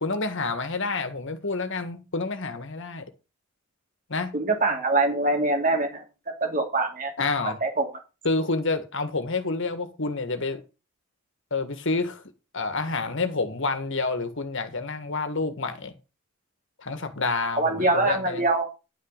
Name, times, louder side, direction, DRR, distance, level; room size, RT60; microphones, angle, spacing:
voice 1, 0.0-3.0 4.1-4.3 7.2-7.6 8.3-10.6 11.5-12.2 12.5-15.9 16.8-18.4, left 3 dB, 55° left, 1.7 m, -28 dB
voice 2, 4.3-6.0 6.4-7.1 7.4-7.8 17.6-18.7, right 2 dB, 40° right, 2.8 m, -24 dB
11.5 x 5.7 x 6.6 m
head